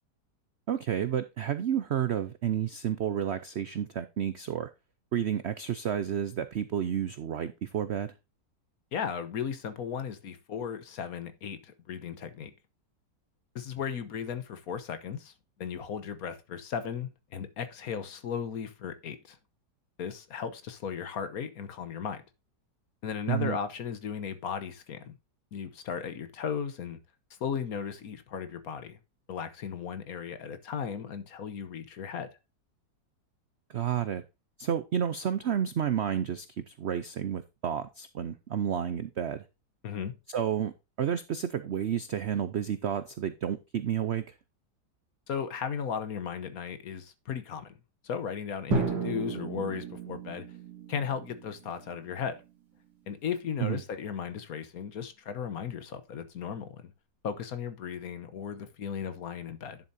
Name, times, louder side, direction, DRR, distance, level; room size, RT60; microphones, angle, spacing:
voice 1, 0.7-4.7 5.1-8.1 23.3-23.6 33.7-34.2 34.6-39.4 40.3-40.7 41.0-44.3 53.6-53.8, right 9 dB, 80° right, 0.6 m, -31 dB
voice 2, 8.9-12.5 13.5-15.3 15.6-19.4 20.0-22.2 23.0-25.2 25.5-27.0 27.4-29.0 29.3-32.3 39.8-40.1 45.3-47.7 48.0-50.4 50.9-52.4 53.1-56.9 57.2-59.8, left 7 dB, 60° left, 1.3 m, -36 dB
Drum, 48.7-52.5, right 3 dB, 65° right, 2.7 m, -34 dB
10.5 x 7.2 x 2.7 m
omnidirectional pair, 1.9 m